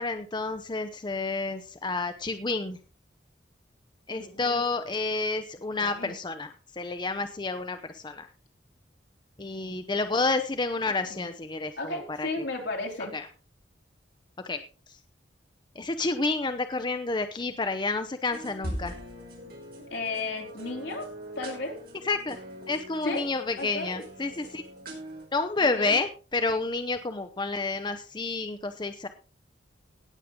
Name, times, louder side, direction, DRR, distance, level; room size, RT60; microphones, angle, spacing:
voice 1, 0.0-2.8 4.1-8.3 9.4-12.3 13.1-13.3 14.4-14.6 15.8-18.9 22.0-22.4 22.7-24.6 25.3-29.1, left 3 dB, 25° left, 9 dB, 0.7 m, -30 dB
voice 2, 4.1-4.6 5.8-6.1 11.0-11.3 11.8-13.2 19.9-21.1 21.4-21.8 23.0-23.2 23.6-24.0 25.6-26.0, left 2 dB, 75° left, 3 dB, 2.9 m, -34 dB
sound 1, 18.3-25.3, right 1 dB, 55° right, 4.9 m, -42 dB
18.0 x 7.4 x 3.7 m, 0.36 s
head